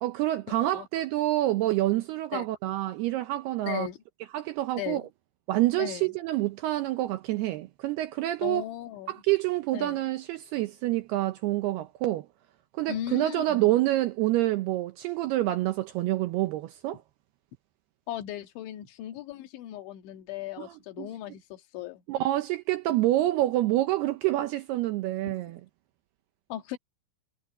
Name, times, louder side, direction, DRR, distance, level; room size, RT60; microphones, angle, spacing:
voice 1, 0.0-3.9 4.3-5.0 5.5-8.6 9.1-12.3 12.8-17.0 20.6-20.7 21.0-21.1 22.1-25.6, right 16 dB, 80° right, 2.4 m, -27 dB
voice 2, 3.6-4.0 4.8-5.1 5.8-6.1 8.4-9.1 9.7-10.1 12.9-13.8 18.1-22.0 26.5-26.8, left 13 dB, 80° left, 4.1 m, -37 dB
omnidirectional pair, 5.3 m